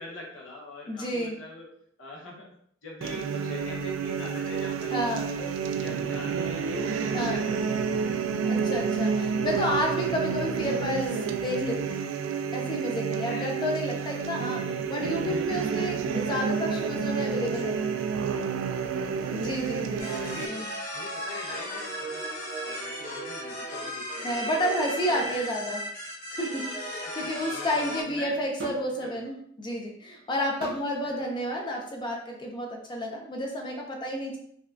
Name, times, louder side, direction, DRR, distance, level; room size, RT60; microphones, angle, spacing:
voice 1, 0.0-1.7 2.0-2.5 2.8-5.0 5.3-8.2 13.2-13.6 13.9-14.1 19.1-20.5 20.9-24.7 25.0-25.5 27.0-28.4 28.7-29.3 31.0-31.2, left 2 dB, 85° left, -3 dB, 0.9 m, -43 dB
voice 2, 0.9-1.4 4.9-5.3 7.1-7.4 8.5-11.2 11.4-12.0 12.5-17.8 19.3-20.1 20.4-20.7 24.2-25.8 26.3-34.4, equal, 25° left, 0 dB, 0.4 m, -31 dB
sound 1, 3.0-20.5, right 6 dB, 70° right, 0.3 m, -29 dB
sound 2, 20.0-28.0, equal, 40° left, 1.3 m, -35 dB
sound 3, 28.6-28.9 30.6-30.9 32.0-32.1, right 1 dB, 85° right, 1.0 m, -37 dB
5.0 x 2.2 x 2.5 m, 0.67 s
head